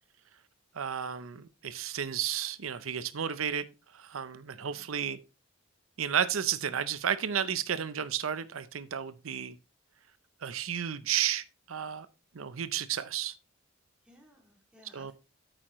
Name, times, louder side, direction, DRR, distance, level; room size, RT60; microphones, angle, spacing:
voice 1, 0.7-3.7 3.9-5.2 6.0-9.5 10.4-12.1 12.3-13.3 14.9-15.1, right 8 dB, 90° right, 0.6 m, -32 dB
voice 2, 4.6-4.9 14.1-15.1, equal, 5° right, 2.7 m, -59 dB
9.0 x 8.7 x 3.1 m
head